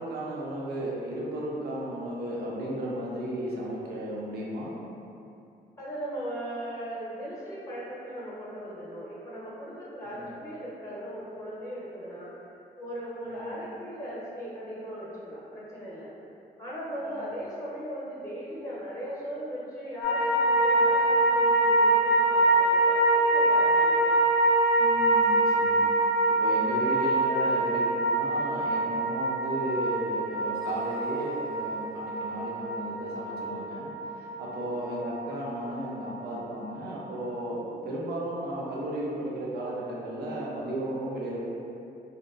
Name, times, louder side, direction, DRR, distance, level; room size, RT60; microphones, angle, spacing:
voice 1, 0.0-4.7 13.3-13.5 17.1-17.2 24.8-25.8 26.3-33.9 34.2-41.4, right 1 dB, 65° right, -5 dB, 0.6 m, -34 dB
voice 2, 5.8-12.4 12.8-16.1 16.6-24.2 26.8-26.9 34.5-34.7, equal, 15° left, -8 dB, 0.8 m, -38 dB
sound 1, 20.0-36.4 36.6-36.7, right 2 dB, 90° left, 0.5 m, -24 dB
2.7 x 2.1 x 2.3 m, 2.6 s
cardioid pair, 70°, 18 cm